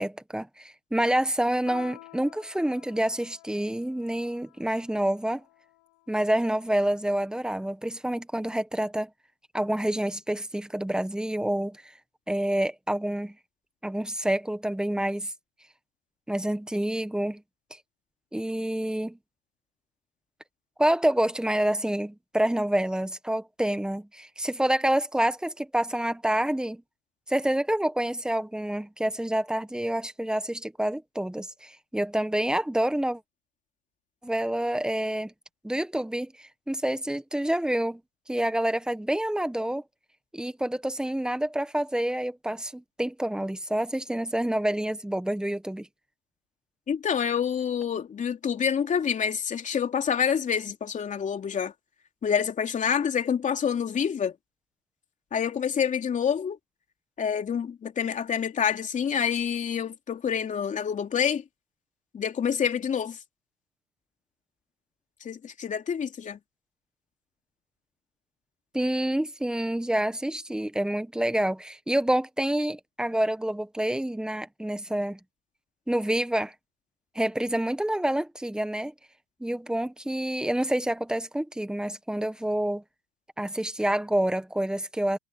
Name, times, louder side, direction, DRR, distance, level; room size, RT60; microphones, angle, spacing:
voice 1, 0.0-5.4 6.1-9.1 9.5-11.8 12.3-13.3 13.8-15.3 16.3-17.4 18.3-19.2 20.8-26.8 27.3-33.2 34.2-35.3 35.6-38.0 38.3-39.8 40.3-45.9 68.7-75.2 75.9-76.5 77.1-78.9 79.4-82.8 83.4-85.2, right 1 dB, ahead, 1.5 m, -27 dB
Piano, 1.7-6.6, left 24 dB, 50° left, 4.6 m, -51 dB
voice 2, 46.9-51.7 52.2-54.3 55.3-56.6 57.2-61.4 62.1-63.2 65.2-66.4, left 7 dB, 20° left, 3.0 m, -27 dB
hypercardioid pair, 125°, 38 cm